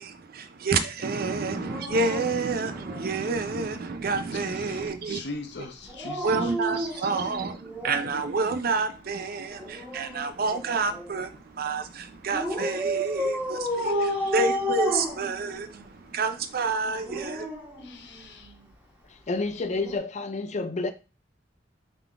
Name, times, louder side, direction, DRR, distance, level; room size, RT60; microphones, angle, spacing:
voice 1, 0.0-5.2 6.2-17.5, right 4 dB, 55° right, 0.5 m, -29 dB
Dog, 1.5-3.4 5.8-8.2 9.5-11.2 12.3-15.9 16.8-18.5 19.8-20.0, equal, 10° right, 1.2 m, -32 dB
voice 2, 4.7-7.1 13.9-14.3 17.8-18.5, left 3 dB, 70° left, 0.8 m, -41 dB
voice 3, 19.3-20.9, left 3 dB, 40° left, 0.4 m, -29 dB
3.8 x 3.6 x 3.4 m
head